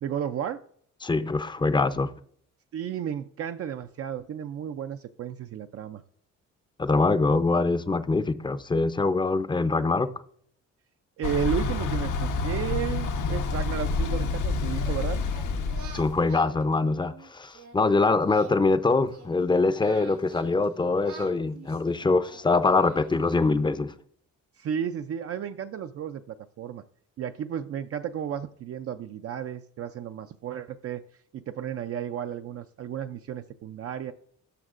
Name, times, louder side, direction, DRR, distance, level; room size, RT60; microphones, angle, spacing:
voice 1, 0.0-0.6 2.7-6.0 11.2-15.2 24.6-26.8 27.2-31.0 31.3-34.1, right 9 dB, 50° right, 0.5 m, -33 dB
voice 2, 1.0-2.1 6.8-10.1 15.9-23.9, left 3 dB, 15° left, 0.5 m, -24 dB
Thunder / Bicycle, 11.2-16.3, left 4 dB, 80° left, 1.1 m, -28 dB
Singing, 14.7-17.7 18.2-20.7 21.0-23.6, right 4 dB, 80° right, 3.1 m, -48 dB
12.5 x 6.3 x 2.5 m
cardioid pair, 90°, 30 cm